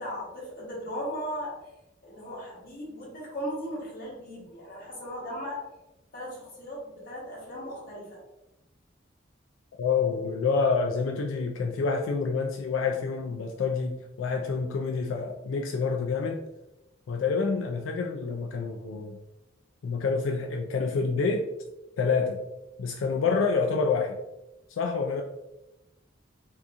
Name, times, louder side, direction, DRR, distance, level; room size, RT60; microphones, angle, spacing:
voice 1, 0.0-1.6 2.0-5.6 6.1-8.2, equal, 50° left, -4 dB, 1.3 m, -37 dB
voice 2, 9.8-16.4 17.1-19.2 19.8-21.4 22.0-22.4 22.8-24.2 24.7-25.2, left 4 dB, 90° left, 2 dB, 0.3 m, -27 dB
2.8 x 2.5 x 3.4 m, 0.93 s
head